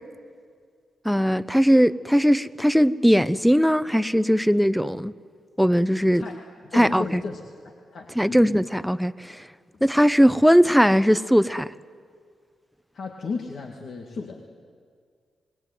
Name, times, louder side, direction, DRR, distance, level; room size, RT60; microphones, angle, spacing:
voice 1, 1.0-5.1 5.6-6.2 6.7-7.2 8.2-9.4 9.8-11.7, equal, ahead, 16 dB, 0.8 m, -19 dB
voice 2, 6.1-8.5 12.9-14.4, left 4 dB, 65° left, 1 dB, 2.1 m, -35 dB
26.5 x 20.5 x 9.3 m, 2.1 s
supercardioid pair, 50°, 0 cm